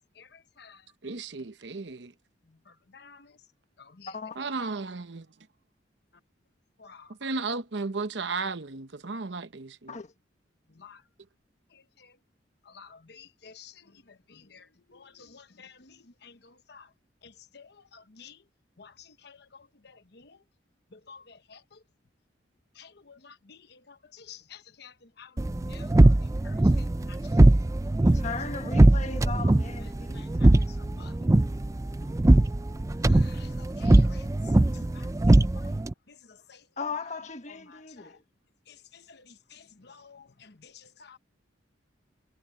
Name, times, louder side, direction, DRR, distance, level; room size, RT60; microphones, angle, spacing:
voice 1, 0.2-0.8 2.7-3.4 3.8-4.1 4.4-4.5 6.8-7.1 10.7-11.0 11.7-12.2 12.6-16.9 17.2-18.4 18.8-20.4 20.9-21.8 22.8-27.2 28.0-28.2 29.8-31.3 33.0-34.3 34.7-35.8 36.1-36.6 37.5-38.2 38.7-41.2, left 6 dB, 65° left, 1.1 m, -52 dB
voice 2, 1.0-2.1 4.4-5.3 7.1-10.0, right 4 dB, 70° right, 1.0 m, -34 dB
voice 3, 4.1-4.4 9.9-10.1 28.1-30.2 36.8-38.2, left 4 dB, 40° left, 1.4 m, -37 dB
sound 1, 25.4-35.9, right 1 dB, 15° right, 0.4 m, -21 dB
head